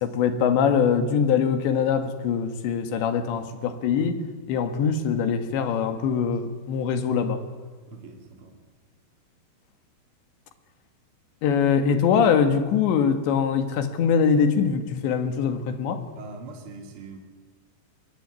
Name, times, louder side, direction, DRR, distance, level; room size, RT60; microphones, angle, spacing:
voice 1, 0.0-4.2 4.5-7.4 11.4-16.0, left 6 dB, 80° left, 4.0 m, -23 dB
voice 2, 7.9-8.6 16.1-17.2, right 3 dB, 35° right, 2.9 m, -42 dB
24.5 x 19.5 x 9.7 m
omnidirectional pair, 5.1 m